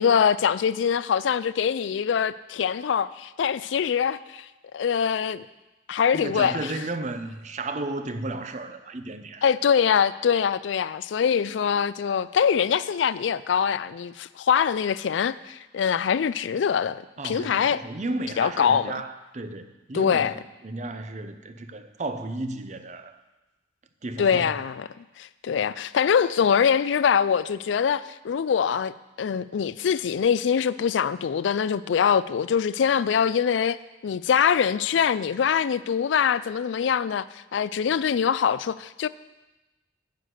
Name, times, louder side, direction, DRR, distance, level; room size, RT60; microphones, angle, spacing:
voice 1, 0.0-4.5 4.7-5.5 5.9-6.7 9.4-17.8 18.4-19.0 19.9-20.3 24.2-33.8 34.0-37.3 37.5-39.1, left 7 dB, 80° left, 0.4 m, -23 dB
voice 2, 6.1-9.4 17.2-23.2 24.0-24.6, right 2 dB, 40° right, 0.6 m, -33 dB
9.5 x 6.0 x 8.0 m
head